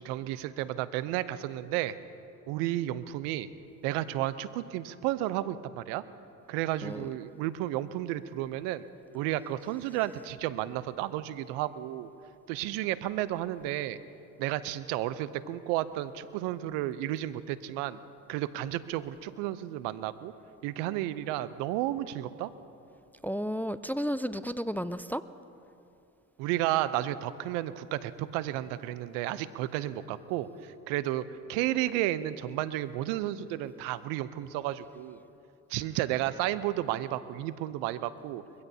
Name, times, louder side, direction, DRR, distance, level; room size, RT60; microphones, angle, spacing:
voice 1, 0.0-2.0 2.5-3.5 3.8-6.0 6.5-8.9 9.1-12.1 12.5-14.0 14.4-18.0 18.3-20.3 20.6-22.5 26.4-35.2 35.7-38.4, right 14 dB, 80° right, 15 dB, 0.7 m, -32 dB
voice 2, 23.2-25.2, equal, 5° left, 14 dB, 0.4 m, -32 dB
23.5 x 16.0 x 2.8 m, 2.6 s
hypercardioid pair, 60°, 41 cm